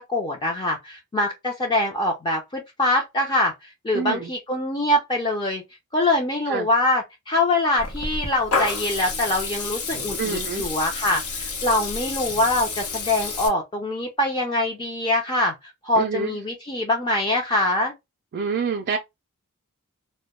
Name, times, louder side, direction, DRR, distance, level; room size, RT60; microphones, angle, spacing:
voice 1, 0.0-3.5 3.8-5.6 5.9-15.5 15.8-17.9, left 1 dB, 20° left, 0.4 m, -24 dB
voice 2, 3.9-4.3 6.5-6.7 10.2-10.6 16.0-16.3 18.3-19.0, right 5 dB, 45° right, 0.3 m, -27 dB
Water tap faucet / Liquid, 7.8-13.5, left 4 dB, 85° left, 0.7 m, -29 dB
2.1 x 2.1 x 2.8 m
head